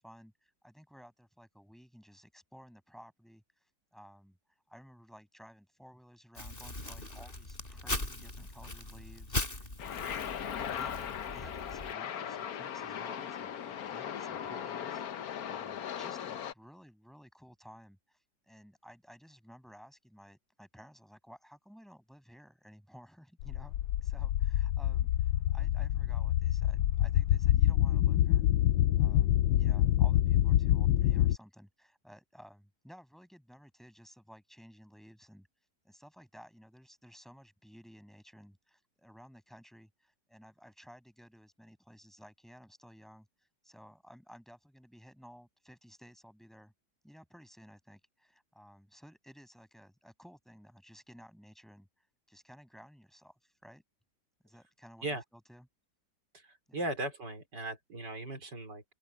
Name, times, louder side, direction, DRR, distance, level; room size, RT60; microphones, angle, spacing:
voice 1, 0.0-3.6 3.9-4.4 4.7-18.2 18.5-28.4 29.0-35.5 35.8-43.3 43.6-46.7 47.0-51.9 52.3-53.8 54.4-55.7 56.7-56.8, equal, ahead, 6.2 m, -56 dB
Crumpling crinkling, 6.3-11.9, left 2 dB, 30° left, 4.3 m, -39 dB
sound 1, 9.8-16.5, left 9 dB, 60° left, 1.3 m, -38 dB
sound 2, 23.4-31.4, left 13 dB, 90° left, 1.3 m, -26 dB
voice 2, 56.3-58.8, right 1 dB, 70° right, 5.0 m, -38 dB
open air
omnidirectional pair, 1.9 m